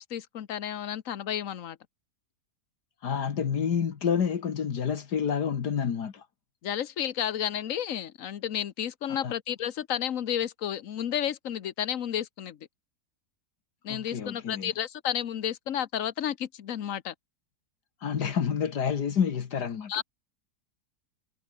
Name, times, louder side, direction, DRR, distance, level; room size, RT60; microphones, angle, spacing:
voice 1, 0.0-1.8 6.6-12.6 13.8-17.1 19.9-20.0, left 10 dB, 55° left, 1.3 m, -32 dB
voice 2, 3.0-6.3 9.2-9.3 13.9-14.7 18.0-20.0, left 7 dB, 75° left, 2.1 m, -28 dB
omnidirectional pair, 1.8 m